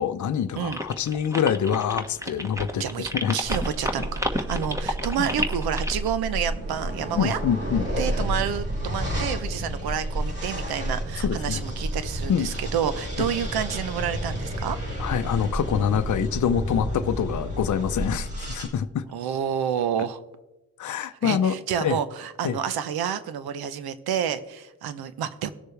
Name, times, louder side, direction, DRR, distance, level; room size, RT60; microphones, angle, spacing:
voice 1, 0.0-2.8 3.1-3.4 5.2-5.3 7.2-7.9 11.2-11.6 12.3-12.5 15.0-19.0 20.8-21.6 21.8-22.0 22.4-22.6, left 8 dB, 55° left, 0.7 m, -25 dB
sound 1, 0.7-6.1, equal, 10° right, 1.4 m, -30 dB
voice 2, 2.8-7.4 8.0-14.8 19.1-20.2 21.2-25.5, right 8 dB, 90° right, 0.8 m, -29 dB
sound 2, 3.4-18.7, equal, 40° right, 4.0 m, -31 dB
18.0 x 6.8 x 3.3 m
supercardioid pair, 55°, 36 cm